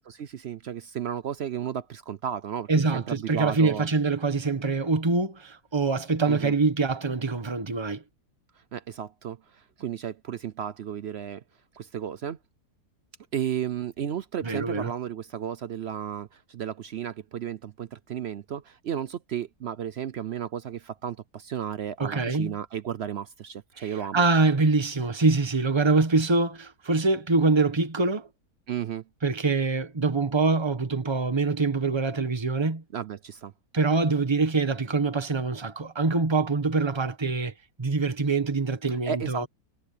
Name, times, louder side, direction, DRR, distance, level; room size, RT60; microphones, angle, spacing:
voice 1, 0.0-3.9 6.3-6.5 8.7-11.4 11.7-12.4 13.3-24.2 28.7-29.0 32.9-33.5 38.9-39.5, right 9 dB, 65° right, 0.7 m, -33 dB
voice 2, 2.7-8.0 14.4-14.9 22.0-22.5 23.8-28.3 29.2-32.8 33.7-37.5 37.8-39.5, right 3 dB, 20° right, 1.4 m, -24 dB
omnidirectional pair, 1.7 m